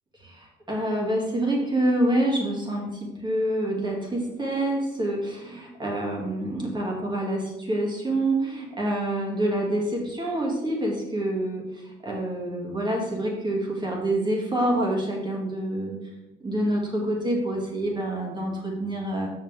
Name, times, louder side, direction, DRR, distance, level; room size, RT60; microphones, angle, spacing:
voice 1, 0.2-11.6 12.0-16.0 16.4-19.3, right 1 dB, 20° right, -1 dB, 2.5 m, -27 dB
7.2 x 6.3 x 3.6 m, 0.99 s
cardioid pair, 90°, 20 cm